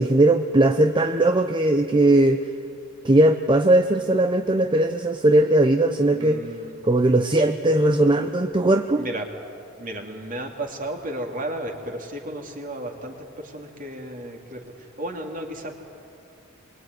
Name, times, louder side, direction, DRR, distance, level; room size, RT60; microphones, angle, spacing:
voice 1, 0.0-2.5 3.0-6.4 6.8-9.1, right 1 dB, 25° right, 7 dB, 0.8 m, -19 dB
voice 2, 6.1-6.8 9.0-9.2 9.8-15.7, right 1 dB, 40° right, 2 dB, 3.1 m, -33 dB
25.0 x 24.0 x 9.6 m, 2.6 s
head